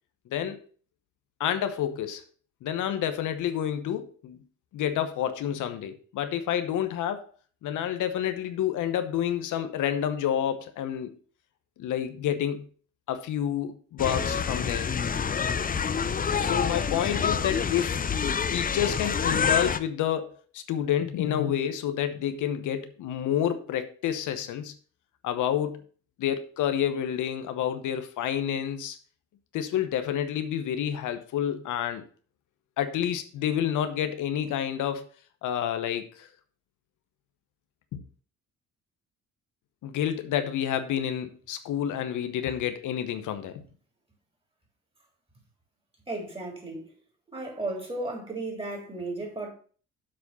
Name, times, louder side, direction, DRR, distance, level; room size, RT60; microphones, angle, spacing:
voice 1, 1.4-2.2 2.6-4.4 4.7-7.3 7.6-11.2 11.8-12.7 13.1-14.9 16.4-18.0 18.5-24.7 25.2-25.8 26.2-29.0 29.5-32.0 32.8-35.1 35.4-36.3 37.9-38.0 39.8-43.6, left 10 dB, 80° left, 1.0 m, -29 dB
sound 1, 14.0-19.8, left 6 dB, 30° left, 0.6 m, -27 dB
voice 2, 46.1-46.9 47.3-49.5, right 2 dB, 20° right, 3.6 m, -34 dB
7.7 x 4.2 x 6.9 m
cardioid pair, 90°, 30 cm